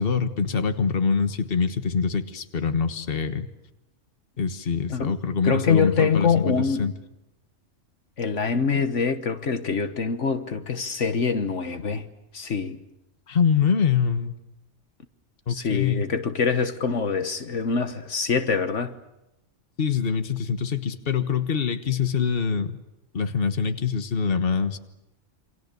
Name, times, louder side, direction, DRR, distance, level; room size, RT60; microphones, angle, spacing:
voice 1, 0.0-3.5 4.4-6.9 13.3-14.3 15.5-16.0 19.8-22.8 23.1-24.8, left 6 dB, 50° left, 1.5 m, -24 dB
voice 2, 5.4-6.9 8.2-12.1 12.3-12.8 15.5-18.9, left 5 dB, 70° left, 1.6 m, -25 dB
28.5 x 26.0 x 6.8 m
omnidirectional pair, 1.3 m